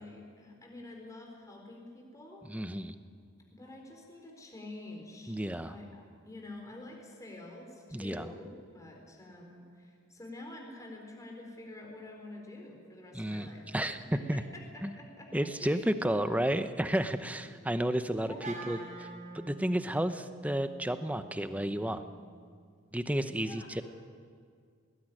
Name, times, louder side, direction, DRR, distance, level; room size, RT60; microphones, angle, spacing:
voice 1, 0.0-2.4 3.5-5.4 5.7-13.7 14.1-15.9 17.5-17.6 18.1-18.7 23.4-23.7, left 2 dB, 15° left, 1 dB, 4.2 m, -48 dB
voice 2, 2.5-2.9 5.3-5.7 7.9-8.3 13.1-14.0 14.3-14.4 14.8-14.9 15.3-18.8 19.3-22.0 22.9-23.8, right 1 dB, 5° right, 10 dB, 0.9 m, -32 dB
Wind instrument woodwind instrument, 18.4-22.7, right 3 dB, 35° right, 5.7 m, -48 dB
20.0 x 19.0 x 10.0 m, 2.1 s
head